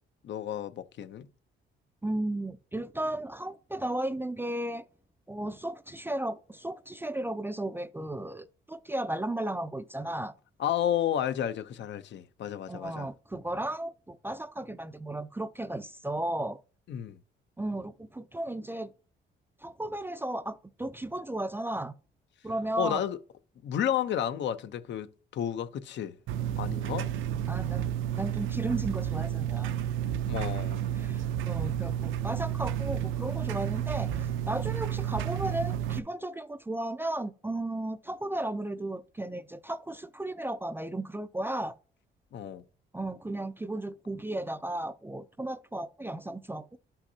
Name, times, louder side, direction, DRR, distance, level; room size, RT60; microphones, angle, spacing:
voice 1, 0.2-1.3 10.6-13.1 16.9-17.2 22.8-23.2 23.6-26.2 26.6-27.1 30.3-30.8 42.3-42.6, left 10 dB, 65° left, 0.7 m, -32 dB
voice 2, 2.0-4.8 5.3-10.3 12.7-16.6 17.6-18.9 19.6-21.9 22.4-23.0 27.5-29.7 30.9-41.8 42.9-46.8, right 1 dB, 10° right, 0.4 m, -35 dB
sound 1, 26.3-36.0, right 10 dB, 85° right, 0.6 m, -31 dB
11.0 x 5.7 x 2.8 m
cardioid pair, 90°, 20 cm